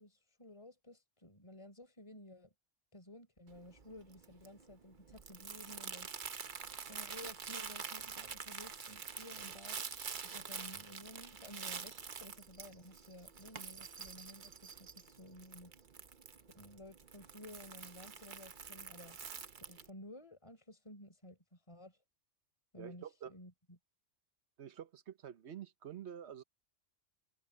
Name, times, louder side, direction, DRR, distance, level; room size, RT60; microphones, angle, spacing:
voice 1, 0.0-2.5 2.9-6.3 6.9-10.0 10.3-15.7 16.5-19.2 19.7-22.0 22.7-23.8, left 1 dB, 25° left, 4.4 m, -54 dB
Crumpling crinkling, 3.5-19.9, right 6 dB, 45° right, 1.0 m, -47 dB
voice 2, 22.8-23.3 24.6-26.4, right 9 dB, 65° right, 1.1 m, -48 dB
omnidirectional pair, 1.3 m